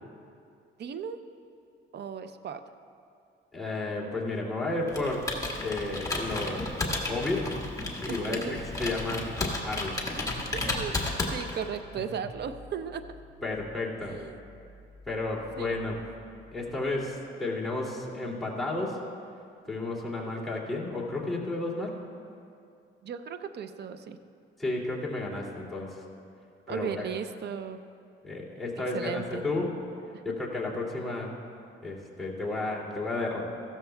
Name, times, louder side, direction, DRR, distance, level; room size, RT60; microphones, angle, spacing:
voice 1, 0.8-1.2 1.9-2.6 8.1-8.6 10.5-11.0 11.3-13.0 14.1-14.4 15.6-15.8 23.0-24.2 26.7-27.8 28.9-29.4, right 7 dB, 55° right, 10 dB, 0.6 m, -36 dB
voice 2, 3.5-5.3 5.6-6.6 7.1-7.5 7.7-9.2 9.6-10.0 13.4-14.2 15.1-16.0 16.5-19.0 19.7-21.9 24.6-26.0 26.7-27.1 28.2-29.7 30.2-31.3 31.8-33.5, left 2 dB, ahead, -6 dB, 2.5 m, -32 dB
Computer keyboard, 4.9-11.8, left 2 dB, 15° left, 1.7 m, -33 dB
sound 1, 10.4-17.5, left 2 dB, 75° right, 2.2 m, -53 dB
15.5 x 12.5 x 2.3 m, 2.4 s
cardioid pair, 90°, 20 cm